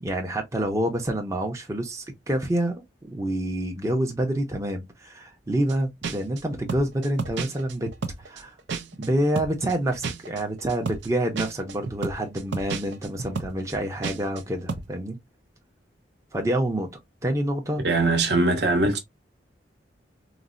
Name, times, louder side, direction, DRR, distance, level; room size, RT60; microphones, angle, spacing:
voice 1, 0.0-7.9 8.2-8.5 9.0-15.2 16.3-16.9 17.2-17.8, right 1 dB, 15° right, 0.5 m, -27 dB
sound 1, 5.7-5.8 6.0-9.1 9.4-14.4 14.7-14.9, right 4 dB, 85° right, 0.5 m, -32 dB
voice 2, 17.8-19.0, right 2 dB, 70° right, 0.9 m, -21 dB
4.0 x 2.0 x 2.4 m
head